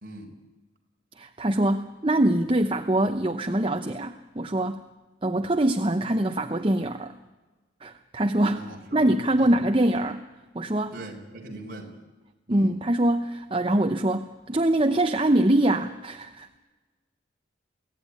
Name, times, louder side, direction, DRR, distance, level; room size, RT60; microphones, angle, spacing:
voice 1, 0.0-0.3 8.5-9.5 10.9-11.9 12.5-12.8, right 1 dB, 45° right, 1 dB, 4.1 m, -41 dB
voice 2, 1.2-4.8 5.2-7.1 7.8-10.2 10.5-10.9 12.5-16.5, right 1 dB, 25° right, 7 dB, 0.8 m, -24 dB
23.5 x 17.5 x 9.8 m, 1.3 s
head